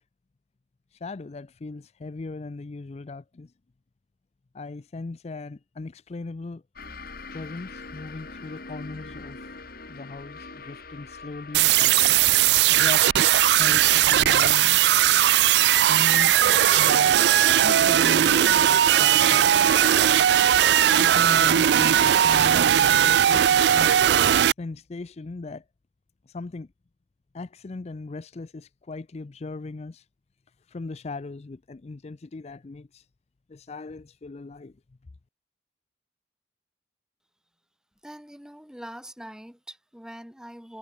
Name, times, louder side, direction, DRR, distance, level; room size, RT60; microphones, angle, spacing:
voice 1, 1.0-3.5 4.5-6.6 7.3-9.5 9.9-13.1 13.6-14.8 15.9-16.3 16.7-17.2 17.6-19.5 20.9-23.9 24.6-25.6 26.3-26.7 27.3-30.0 30.7-33.0 33.5-34.7, left 3 dB, 35° left, 0.4 m, -38 dB
sound 1, 6.8-18.0, left 3 dB, 55° left, 5.1 m, -44 dB
sound 2, 11.5-24.5, right 10 dB, 65° right, 0.4 m, -18 dB
voice 2, 38.0-40.8, equal, 5° right, 1.5 m, -43 dB
head